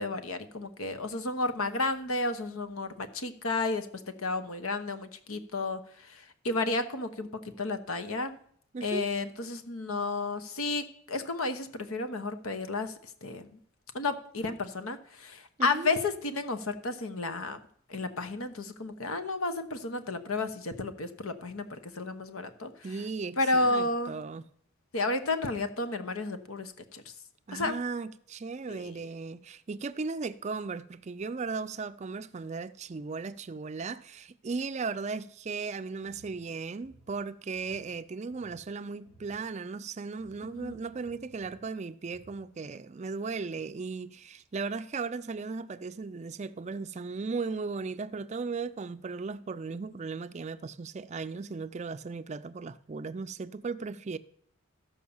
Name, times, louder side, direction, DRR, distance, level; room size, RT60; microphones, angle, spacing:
voice 1, 0.0-3.9 4.2-7.3 7.6-8.4 8.8-12.9 13.2-13.6 13.9-17.6 17.9-23.0 23.4-24.2 24.9-27.1 27.5-27.8 28.7-28.9 40.4-40.7, left 3 dB, 85° left, 1.1 m, -32 dB
voice 2, 8.7-9.1 15.6-15.9 22.8-24.4 27.5-54.2, right 4 dB, 30° right, 0.4 m, -36 dB
sound 1, 35.9-42.9, right 1 dB, 60° left, 4.4 m, -60 dB
14.0 x 5.5 x 7.1 m
head